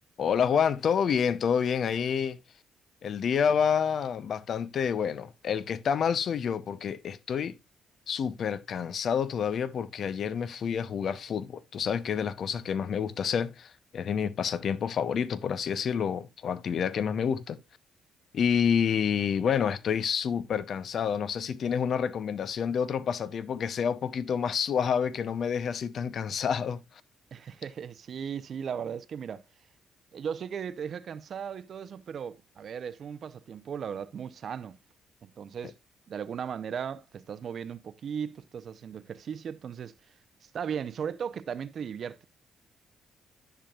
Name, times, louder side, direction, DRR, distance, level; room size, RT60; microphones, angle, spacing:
voice 1, 0.2-2.4 3.0-7.6 8.1-17.6 18.3-26.8, left 7 dB, 60° left, 0.7 m, -28 dB
voice 2, 27.3-29.4 30.1-34.8 35.2-35.7 36.1-39.9 40.4-42.2, right 7 dB, 55° right, 0.6 m, -37 dB
10.5 x 6.8 x 2.4 m
cardioid pair, 90°, 0 cm